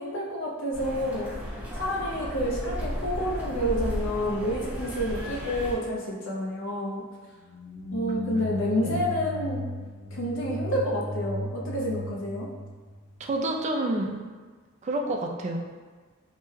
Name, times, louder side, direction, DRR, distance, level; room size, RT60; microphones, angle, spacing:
voice 1, 0.0-1.3 1.8-7.0 7.9-9.6 10.1-12.5, equal, 65° left, -3 dB, 0.6 m, -29 dB
sound 1, 0.7-5.7, equal, 5° right, 0.7 m, -34 dB
sound 2, 7.3-13.4, left 1 dB, 35° left, 0.8 m, -36 dB
voice 2, 13.2-14.2 14.8-15.6, right 2 dB, 35° right, 2 dB, 0.3 m, -28 dB
3.3 x 2.1 x 3.1 m, 1.4 s
head